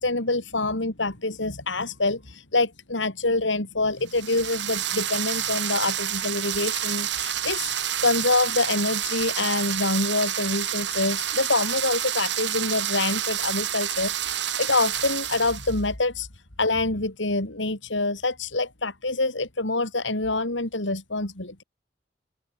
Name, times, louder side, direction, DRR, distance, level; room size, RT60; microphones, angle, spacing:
voice 1, 0.0-16.3 16.6-21.6, left 2 dB, 90° left, 4.3 m, -26 dB
sound 1, 4.1-15.8, right 11 dB, 70° right, 5.6 m, -29 dB
head